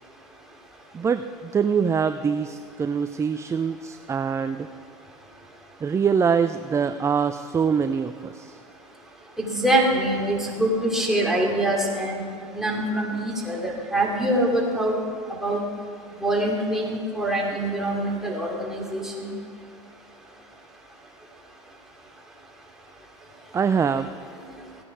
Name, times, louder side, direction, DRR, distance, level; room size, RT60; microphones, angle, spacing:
voice 1, 0.9-4.7 5.8-8.6 23.5-24.2, right 6 dB, 20° right, 10 dB, 0.4 m, -24 dB
voice 2, 9.4-12.2 12.5-14.9 15.4-15.6 16.2-19.3, right 1 dB, ahead, -2 dB, 3.0 m, -24 dB
16.0 x 9.9 x 4.7 m, 2.1 s
hypercardioid pair, 90°, 16 cm